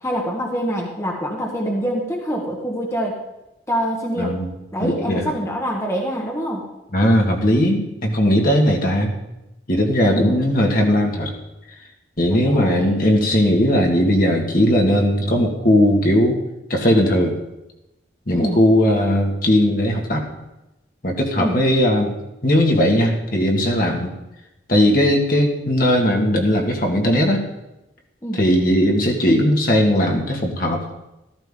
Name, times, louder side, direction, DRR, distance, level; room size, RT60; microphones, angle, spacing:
voice 1, 0.0-3.2 3.7-4.4 4.7-6.7 10.0-10.4 12.3-12.9 18.3-18.6 21.4-21.6 28.2-28.4, equal, 15° left, 0 dB, 1.4 m, -25 dB
voice 2, 4.2-4.5 4.8-5.2 6.9-9.1 9.7-11.3 12.2-16.4 16.7-17.4 18.3-20.3 21.0-22.1 22.4-24.1 24.7-27.4 28.3-30.8, equal, 50° left, 1 dB, 2.0 m, -18 dB
14.0 x 14.0 x 3.8 m, 0.95 s
head